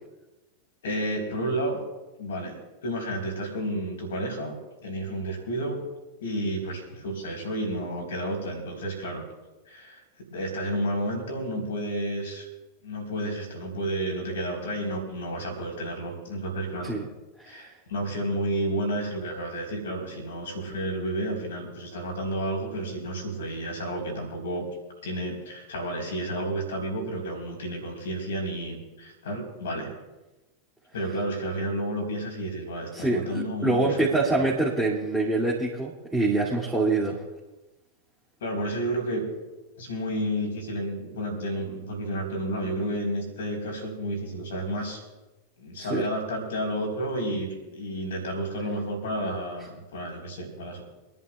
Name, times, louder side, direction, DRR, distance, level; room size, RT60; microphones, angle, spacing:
voice 1, 0.8-1.8 2.2-2.5 2.8-5.8 6.2-9.2 9.7-10.0 10.3-12.5 12.8-16.9 17.5-24.7 25.0-29.9 30.9-34.0 34.4-34.5 38.4-39.3 39.8-45.0 45.6-50.8, right 1 dB, 60° left, 2 dB, 4.1 m, -31 dB
voice 2, 32.9-37.2 45.8-46.0, right 2 dB, 5° right, -9 dB, 2.6 m, -25 dB
27.0 x 11.0 x 2.4 m, 1.1 s
figure-of-eight pair, 90°, 0 cm